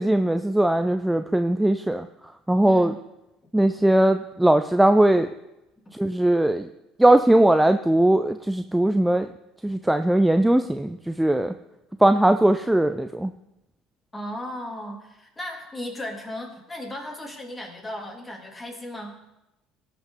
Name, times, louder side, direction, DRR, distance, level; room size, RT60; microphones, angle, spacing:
voice 1, 0.0-2.1 2.5-2.9 3.5-5.3 6.0-6.7 7.0-9.3 9.6-11.5 12.0-13.3, right 1 dB, 5° right, 9 dB, 0.5 m, -19 dB
voice 2, 2.6-3.0 14.1-19.1, left 1 dB, 20° left, 1 dB, 2.9 m, -36 dB
17.0 x 6.1 x 3.9 m, 0.93 s
hypercardioid pair, 70°, 0 cm